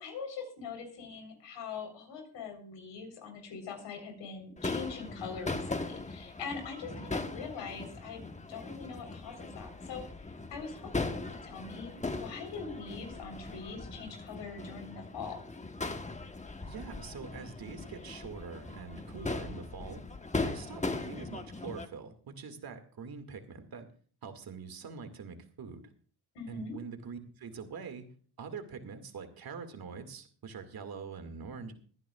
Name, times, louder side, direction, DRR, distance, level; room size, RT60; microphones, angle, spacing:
voice 1, 0.0-8.2 8.5-10.0 10.5-15.4 26.3-26.7, left 5 dB, 90° left, 4 dB, 4.0 m, -42 dB
Crowd / Fireworks, 4.6-21.9, left 3 dB, 15° left, 1.1 m, -39 dB
voice 2, 16.7-20.0 20.4-23.8 24.2-25.8 26.5-28.1 28.4-31.7, right 5 dB, 60° right, 7 dB, 2.2 m, -44 dB
22.5 x 10.0 x 2.4 m, 0.44 s
cardioid pair, 85°, 42 cm